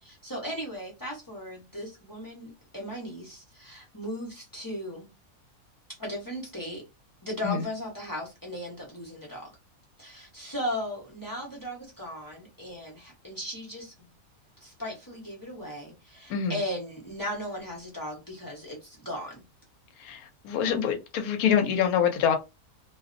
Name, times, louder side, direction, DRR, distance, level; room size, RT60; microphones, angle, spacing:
voice 1, 0.0-5.1 6.0-6.8 7.2-9.5 10.0-13.9 14.6-19.4, equal, 20° left, 0.6 m, -37 dB
voice 2, 20.0-22.4, left 8 dB, 80° left, 1.0 m, -25 dB
2.6 x 2.0 x 2.5 m
omnidirectional pair, 1.5 m